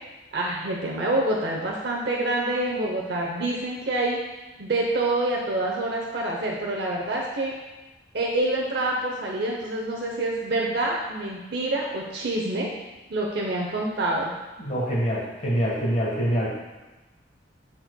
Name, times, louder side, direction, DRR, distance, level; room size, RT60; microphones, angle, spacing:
voice 1, 0.3-4.2 4.6-7.5 8.1-12.7 13.1-14.3, right 2 dB, 60° right, -2 dB, 0.7 m, -26 dB
voice 2, 14.6-16.5, equal, 40° left, -5 dB, 1.3 m, -25 dB
11.0 x 4.3 x 2.2 m, 1.1 s
head